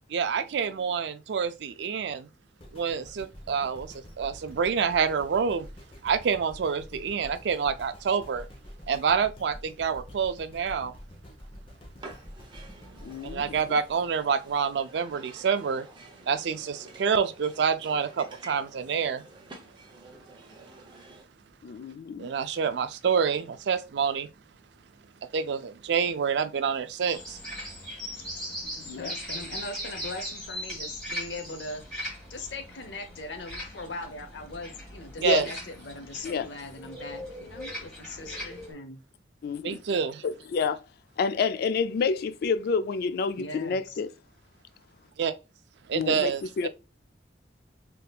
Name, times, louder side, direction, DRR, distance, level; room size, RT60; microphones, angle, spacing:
voice 1, 0.1-2.3 2.7-5.7 6.0-8.5 8.9-10.9 13.2-15.9 16.3-19.2 22.2-24.3 25.3-27.4 35.2-35.5 39.6-40.2 45.2-45.3 45.9-46.7, right 6 dB, 70° right, 0.4 m, -27 dB
sound 1, 2.6-14.8 15.3-15.4, equal, 30° left, 0.8 m, -47 dB
sound 2, 12.0-21.2, right 2 dB, 25° right, 0.7 m, -49 dB
voice 2, 13.0-13.6 21.6-22.3 28.8-29.1 35.2-35.4 36.2-36.5 39.4-39.8 40.2-40.8 41.2-44.1 45.9-46.3 46.6-46.7, left 5 dB, 60° left, 0.3 m, -28 dB
sound 3, 27.1-38.7, equal, 5° left, 1.4 m, -39 dB
voice 3, 28.3-39.0 43.4-44.0, left 2 dB, 80° left, 0.8 m, -40 dB
3.5 x 2.8 x 2.3 m
head